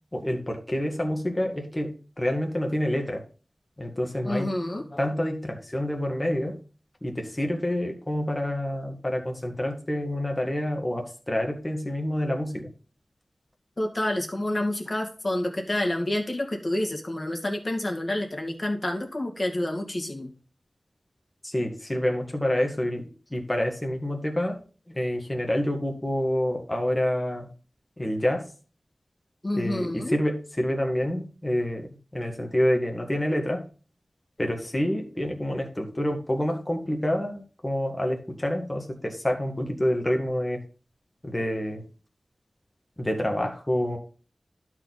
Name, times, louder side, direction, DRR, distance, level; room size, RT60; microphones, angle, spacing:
voice 1, 0.1-1.9 2.2-3.2 3.8-4.5 5.0-6.6 7.0-12.7 21.4-23.0 23.3-24.6 24.9-27.5 28.0-28.5 29.5-33.6 34.4-40.6 41.2-41.8 43.0-44.0, left 1 dB, 20° left, 2 dB, 1.8 m, -27 dB
voice 2, 4.2-5.0 13.8-20.3 29.4-30.1, left 1 dB, 40° left, 3 dB, 2.1 m, -28 dB
12.0 x 4.6 x 4.1 m, 0.38 s
wide cardioid pair, 70°, 0 cm